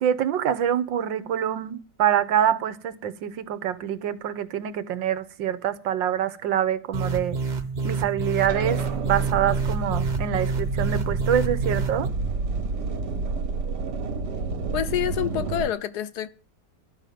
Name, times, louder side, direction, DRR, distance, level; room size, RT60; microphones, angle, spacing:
voice 1, 0.0-7.4 7.8-12.1, right 9 dB, 90° right, 1.7 m, -25 dB
sound 1, 6.9-12.1, right 4 dB, 30° right, 1.1 m, -28 dB
sound 2, 8.5-15.7, right 3 dB, 65° right, 1.9 m, -29 dB
voice 2, 14.7-16.3, left 11 dB, 65° left, 1.3 m, -27 dB
12.5 x 6.5 x 9.2 m
omnidirectional pair, 2.0 m